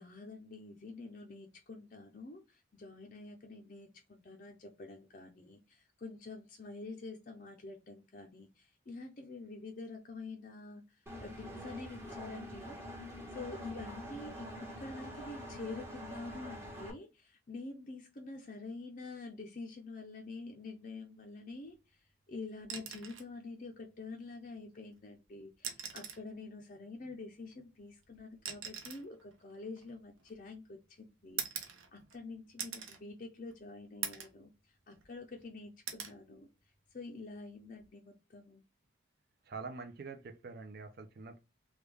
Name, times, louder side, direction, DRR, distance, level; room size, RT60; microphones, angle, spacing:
voice 1, 0.0-12.8 13.3-31.6 31.9-34.5 34.9-36.5 36.9-38.6, left 3 dB, 40° left, 0.4 m, -47 dB
Engine, 11.1-16.9, equal, 10° right, 0.7 m, -46 dB
sound 1, 22.6-23.3 24.7-24.9 25.5-26.3 27.5-30.5 31.4-32.2 32.6-33.0 33.5-33.6 34.0-34.4 34.8-35.4 35.9-36.2 37.6-37.9, right 8 dB, 80° right, 0.7 m, -43 dB
voice 2, 39.5-41.4, right 4 dB, 50° right, 0.4 m, -45 dB
3.4 x 2.2 x 3.3 m
head